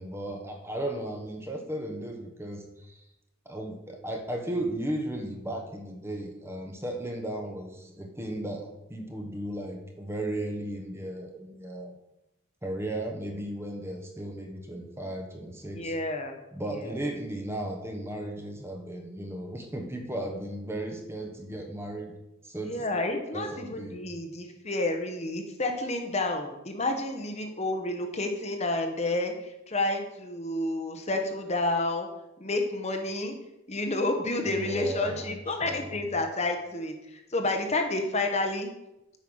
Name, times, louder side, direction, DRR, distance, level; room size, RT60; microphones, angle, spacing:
voice 1, 0.0-3.0 3.4-12.0 12.6-15.9 16.5-22.1 22.4-22.8 23.3-24.0 34.5-36.0, right 1 dB, 10° right, 3 dB, 1.0 m, -35 dB
voice 2, 15.7-16.4 16.7-17.0 22.6-32.1 32.4-33.3 33.7-36.9 37.3-38.7, left 2 dB, 30° left, 4 dB, 1.0 m, -30 dB
8.3 x 5.7 x 6.2 m, 0.91 s
head